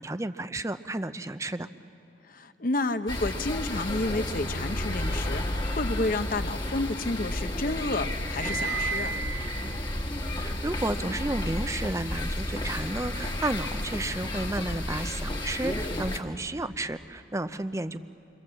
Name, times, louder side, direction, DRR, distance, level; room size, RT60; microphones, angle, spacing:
voice 1, 0.0-1.7 10.3-18.0, right 2 dB, 15° right, 11 dB, 0.6 m, -32 dB
voice 2, 2.3-9.2, left 2 dB, 45° left, 9 dB, 0.9 m, -30 dB
sound 1, 3.1-16.2, left 1 dB, 25° left, 1.5 m, -32 dB
sound 2, 6.5-7.4 7.7-11.1, right 5 dB, 75° right, 4.2 m, -36 dB
28.0 x 24.0 x 7.6 m, 2.8 s
head